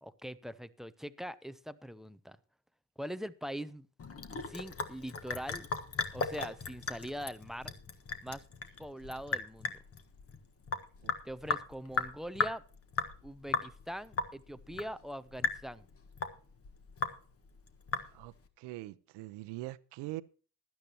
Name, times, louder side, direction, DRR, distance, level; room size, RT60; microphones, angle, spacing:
voice 1, 0.0-2.4 3.0-3.9 4.3-5.7 6.1-7.7 8.2-8.4 8.8-9.7 11.2-12.6 13.2-15.8, equal, ahead, 0.6 m, -42 dB
Sink (filling or washing) / Drip, 4.0-18.5, left 4 dB, 30° left, 1.5 m, -37 dB
voice 2, 18.1-20.2, right 17 dB, 70° right, 0.9 m, -43 dB
16.0 x 12.0 x 2.9 m
supercardioid pair, 95°, 43 cm